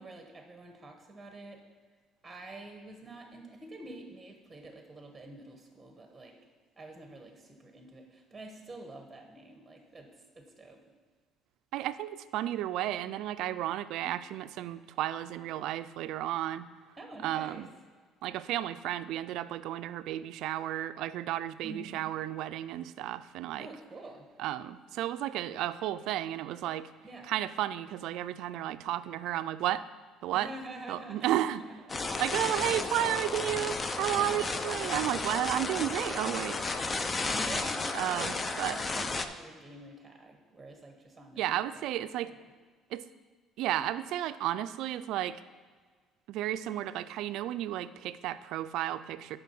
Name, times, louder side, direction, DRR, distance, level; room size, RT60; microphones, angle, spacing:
voice 1, 0.0-1.6 2.2-6.4 6.8-10.8 17.0-17.6 21.6-22.0 23.6-24.3 27.0-27.3 30.3-32.0 32.3-32.4 34.1-34.3 34.5-35.1 37.3-41.7, right 2 dB, 15° right, 3 dB, 1.2 m, -47 dB
voice 2, 11.7-16.7 17.2-17.7 18.2-23.7 24.4-26.9 27.3-29.8 30.2-30.5 30.9-31.6 32.2-36.6 37.9-38.8 41.4-42.3 42.9-43.1 43.6-45.4 46.3-49.4, right 13 dB, 75° right, 13 dB, 0.3 m, -33 dB
sound 1, 31.9-39.3, left 3 dB, 30° left, 0.6 m, -33 dB
7.0 x 5.4 x 5.9 m, 1.5 s
cardioid pair, 95°, 0 cm